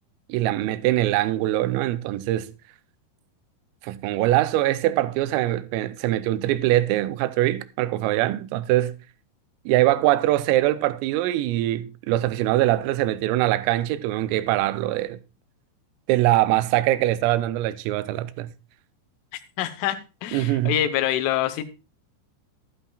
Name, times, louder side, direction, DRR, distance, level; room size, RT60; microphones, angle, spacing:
voice 1, 0.3-2.5 3.8-9.0 9.7-15.2 16.1-18.5 20.3-20.7, right 15 dB, 90° right, 3.3 m, -23 dB
voice 2, 19.6-20.0 20.2-21.6, left 12 dB, 80° left, 3.3 m, -25 dB
12.5 x 11.5 x 2.3 m
omnidirectional pair, 5.8 m